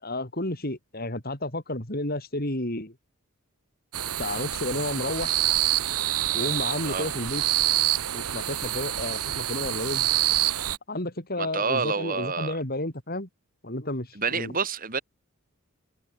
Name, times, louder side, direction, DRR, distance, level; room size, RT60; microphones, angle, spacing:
voice 1, 0.0-2.9 4.2-5.4 6.3-7.4 8.1-10.1 10.9-13.3 13.6-14.5, left 1 dB, 45° left, 4.9 m, -31 dB
sound 1, 3.9-10.8, right 13 dB, 90° right, 1.1 m, -27 dB
voice 2, 11.4-12.6 14.2-15.0, right 5 dB, 40° right, 2.6 m, -28 dB
head